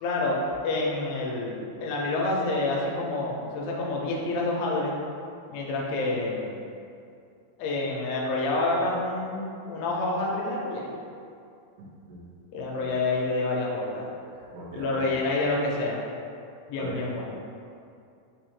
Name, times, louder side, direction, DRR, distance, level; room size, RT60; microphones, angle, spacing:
voice 1, 0.0-4.9 5.5-6.6 7.6-10.9 12.5-14.1 14.7-16.0 16.7-17.3, left 2 dB, 85° left, -2 dB, 2.3 m, -28 dB
voice 2, 11.8-12.2 12.8-12.9 14.3-15.2 16.8-17.0, right 2 dB, 90° right, -5 dB, 2.5 m, -39 dB
5.6 x 2.0 x 3.1 m, 2.5 s
omnidirectional pair, 4.2 m